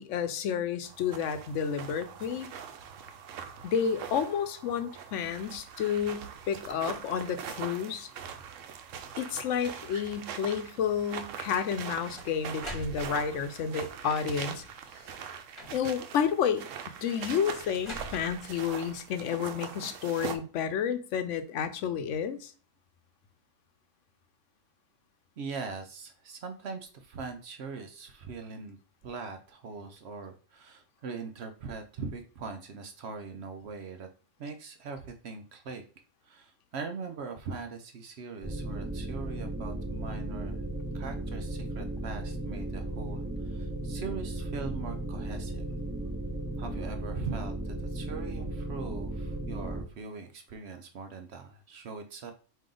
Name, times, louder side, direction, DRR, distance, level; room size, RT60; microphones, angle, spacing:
voice 1, 0.0-2.5 3.6-8.1 9.2-14.6 15.7-16.7 17.0-22.5, left 7 dB, 75° left, 1.0 m, -31 dB
sound 1, 0.8-20.4, right 7 dB, 85° right, 1.0 m, -42 dB
sound 2, 11.8-13.5 14.3-14.8 15.5-16.1 17.5-18.8, right 1 dB, 25° left, 1.3 m, -44 dB
voice 2, 25.4-28.8 29.0-34.1 34.4-35.8 36.2-40.6 40.9-45.6 46.6-52.3, right 4 dB, 65° right, 0.8 m, -41 dB
sound 3, 38.4-49.8, right 1 dB, 15° right, 0.4 m, -35 dB
5.0 x 2.7 x 3.8 m
omnidirectional pair, 1.3 m